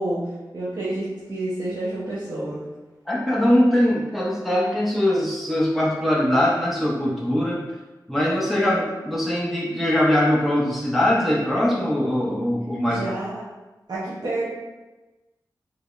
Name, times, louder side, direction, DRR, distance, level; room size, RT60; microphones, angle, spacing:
voice 1, 0.0-2.6 8.6-8.7 12.9-13.5 13.9-14.5, right 1 dB, 60° right, -8 dB, 0.8 m, -29 dB
voice 2, 3.1-7.6 8.1-13.0, left 1 dB, ahead, -5 dB, 0.7 m, -21 dB
4.8 x 2.0 x 2.4 m, 1.1 s
cardioid pair, 45°, 8 cm